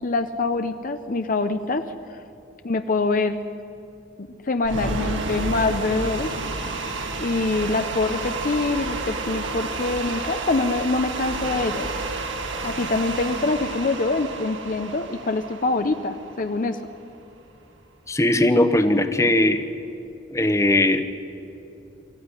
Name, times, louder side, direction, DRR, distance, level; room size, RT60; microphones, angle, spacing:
voice 1, 0.0-1.8 2.1-2.2 2.6-3.4 4.2-6.3 7.2-11.9 12.6-16.8, left 3 dB, 45° left, 8 dB, 0.7 m, -25 dB
sound 1, 4.6-16.8, right 2 dB, 75° right, 1.9 m, -30 dB
voice 2, 18.1-19.7 20.3-21.0, left 1 dB, 15° left, 9 dB, 1.0 m, -19 dB
23.0 x 14.5 x 9.8 m, 2.7 s
head